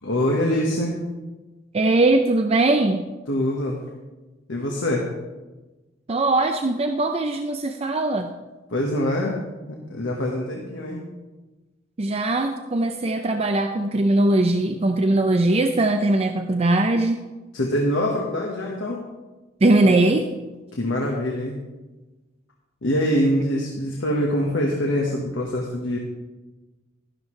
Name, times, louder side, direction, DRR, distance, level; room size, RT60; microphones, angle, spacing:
voice 1, 0.0-1.0 3.3-3.8 4.5-5.1 8.7-9.4 9.9-11.0 17.5-19.0 20.7-21.6 22.8-26.0, left 1 dB, 80° left, -1 dB, 1.3 m, -24 dB
voice 2, 1.7-3.1 6.1-8.3 12.0-17.2 19.6-20.3, right 2 dB, 35° right, 6 dB, 0.5 m, -20 dB
12.0 x 11.5 x 3.2 m, 1.2 s
head